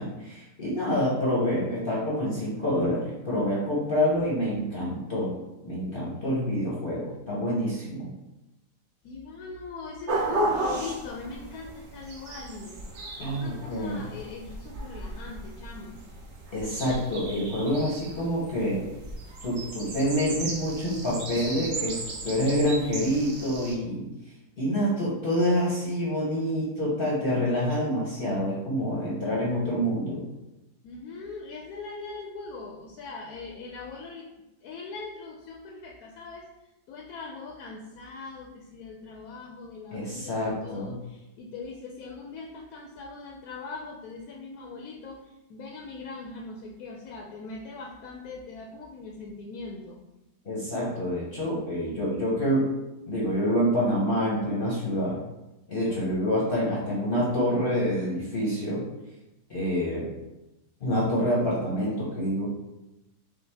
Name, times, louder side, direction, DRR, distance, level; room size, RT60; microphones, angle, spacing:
voice 1, 0.0-5.3 5.6-8.1 13.2-14.0 16.5-18.8 19.4-22.0 22.2-24.0 24.6-30.2 39.9-40.9 50.4-52.7 53.1-55.2 55.7-58.8 59.5-60.1 60.8-62.5, equal, 45° left, -6 dB, 0.9 m, -27 dB
voice 2, 9.0-16.0 30.8-34.3 34.6-36.5 36.9-50.0, left 3 dB, 70° left, 0 dB, 1.0 m, -41 dB
sound 1, 10.1-23.7, right 2 dB, 55° right, 0.9 m, -35 dB
5.5 x 2.3 x 3.4 m, 0.98 s
omnidirectional pair, 1.8 m